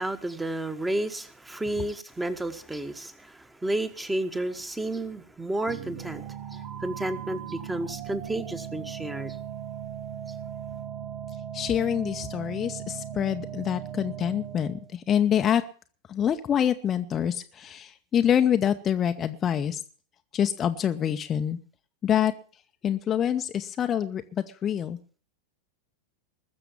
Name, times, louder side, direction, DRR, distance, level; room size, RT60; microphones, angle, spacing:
voice 1, 0.0-6.2 6.5-9.4, right 1 dB, 10° right, 1.2 m, -31 dB
sound 1, 5.7-14.9, right 9 dB, 40° right, 2.4 m, -38 dB
voice 2, 11.5-15.6 16.1-19.8 20.3-21.6 22.0-22.3 22.8-25.0, left 9 dB, 25° left, 0.7 m, -26 dB
20.5 x 6.9 x 7.1 m
figure-of-eight pair, 90°, 0 cm